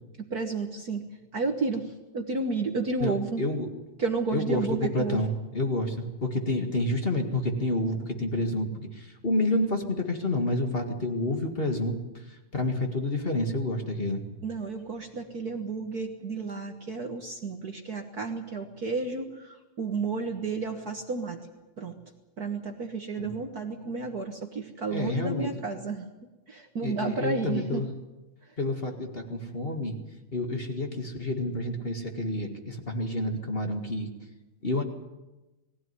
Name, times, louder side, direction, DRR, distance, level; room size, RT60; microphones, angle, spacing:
voice 1, 0.3-1.0 1.3-3.4 4.0-5.2 14.4-21.4 21.8-22.0 22.4-26.1 26.5-27.8, right 4 dB, 70° right, 4 dB, 0.9 m, -32 dB
voice 2, 3.0-3.7 4.3-11.9 12.5-14.2 23.2-23.3 24.9-25.5 26.8-27.9 28.6-30.0 30.3-34.1 34.6-34.8, left 1 dB, 25° left, 4 dB, 1.3 m, -29 dB
21.0 x 16.0 x 9.6 m, 1.1 s
omnidirectional pair, 3.9 m